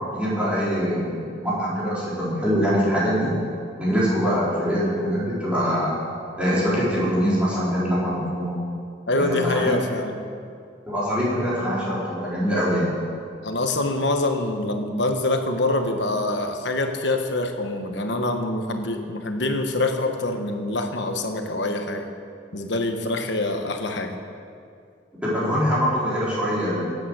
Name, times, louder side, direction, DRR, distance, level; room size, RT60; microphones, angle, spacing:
voice 1, 0.1-3.3 3.8-6.0 6.4-8.6 9.1-9.7 10.9-12.9 25.2-26.9, equal, 5° right, -9 dB, 4.4 m, -23 dB
voice 2, 9.1-10.2 13.4-22.1 22.5-24.2, left 2 dB, 65° left, 5 dB, 1.3 m, -25 dB
17.0 x 8.8 x 6.6 m, 2.3 s
head